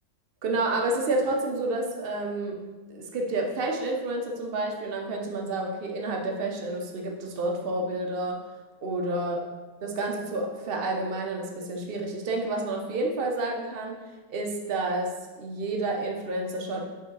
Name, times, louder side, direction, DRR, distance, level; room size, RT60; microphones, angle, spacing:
voice 1, 0.4-2.6 2.9-8.4 8.8-9.4 9.8-14.0 14.3-16.9, right 2 dB, 60° right, 1 dB, 0.5 m, -29 dB
6.1 x 3.8 x 4.6 m, 1.2 s
omnidirectional pair, 2.0 m